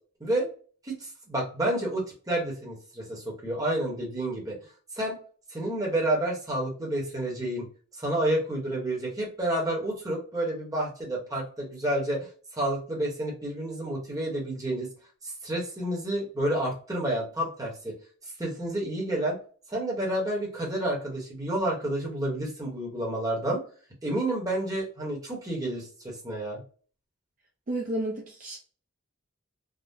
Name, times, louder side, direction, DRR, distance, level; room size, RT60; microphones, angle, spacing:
voice 1, 0.8-4.6 4.9-5.2 5.5-7.7 8.0-12.2 12.5-14.9 15.2-17.9 18.4-19.4 19.7-23.6 24.0-26.6, right 1 dB, 15° right, 1.0 m, -29 dB
voice 2, 27.7-28.6, right 1 dB, 40° right, 0.5 m, -31 dB
3.6 x 2.0 x 2.6 m
head